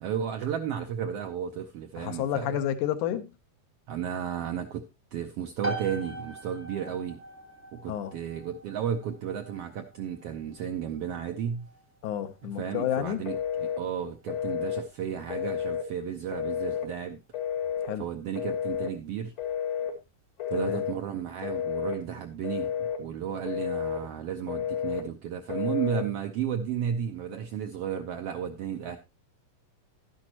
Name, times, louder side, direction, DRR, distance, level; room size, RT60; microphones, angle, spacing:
voice 1, 0.0-2.6 3.9-4.8 5.1-7.2 7.7-11.7 12.4-17.2 18.0-19.3 20.5-29.0, right 8 dB, 75° right, 1.4 m, -33 dB
voice 2, 2.0-3.3 7.9-8.1 12.0-13.3 17.8-18.1 20.5-20.8, left 10 dB, 80° left, 2.4 m, -30 dB
sound 1, 5.6-20.1, right 1 dB, 20° right, 0.3 m, -44 dB
Telephone, 13.3-13.8 14.3-14.8 15.3-15.9 16.3-16.9 17.3-17.9 18.4-18.9 19.4-19.9 20.4-21.0 21.4-22.0 22.4-23.0 23.4-24.0 24.5-25.0 25.5-26.1, left 8 dB, 40° left, 1.0 m, -31 dB
12.0 x 10.5 x 2.9 m
omnidirectional pair, 3.6 m